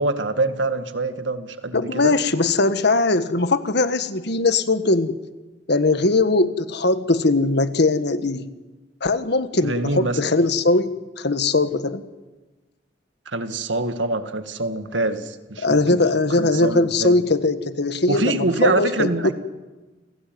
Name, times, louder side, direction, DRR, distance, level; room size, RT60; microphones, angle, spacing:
voice 1, 0.0-2.1 9.6-10.2 13.3-16.0 16.4-17.1 18.1-19.3, right 2 dB, 85° right, 9 dB, 2.0 m, -25 dB
voice 2, 1.7-5.2 5.7-8.5 9.0-12.0 15.6-19.1, left 2 dB, 65° left, 11 dB, 1.5 m, -20 dB
29.0 x 17.5 x 9.5 m, 1.2 s
head